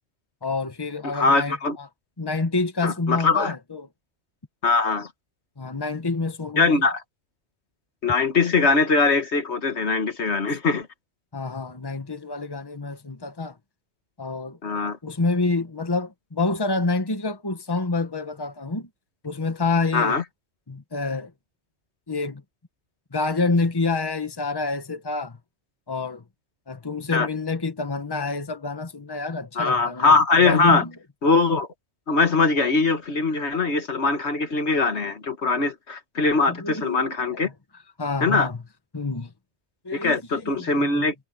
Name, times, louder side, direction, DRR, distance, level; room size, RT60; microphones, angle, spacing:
voice 1, 0.4-1.9 2.2-3.9 5.6-6.8 11.3-13.6 14.2-14.6 15.0-18.9 19.2-20.2 20.7-21.3 22.1-22.4 23.1-25.4 25.9-26.2 26.7-30.2 30.4-30.9 36.5-37.5 38.0-38.6 38.9-39.3 39.8-41.1, left 3 dB, 20° left, 1.4 m, -27 dB
voice 2, 1.0-1.8 2.8-3.5 4.6-5.1 6.6-7.0 8.0-10.9 14.6-15.0 19.9-20.2 27.1-27.3 29.6-30.8 31.2-31.7 32.1-37.5 38.2-38.5 39.9-41.1, left 4 dB, 75° left, 1.9 m, -21 dB
omnidirectional pair, 1.2 m